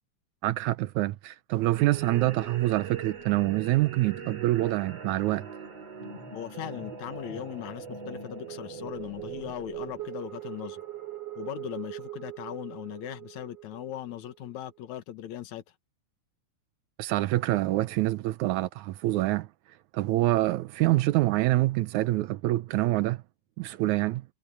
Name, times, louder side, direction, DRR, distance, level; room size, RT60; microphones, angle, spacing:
voice 1, 0.4-5.5 17.0-19.5 19.9-23.2 23.6-24.2, right 17 dB, 80° right, 2.0 m, -26 dB
sound 1, 1.8-14.5, right 7 dB, 50° right, 5.3 m, -41 dB
voice 2, 6.3-10.8 11.4-15.6, left 11 dB, 70° left, 2.6 m, -39 dB
omnidirectional pair, 3.6 m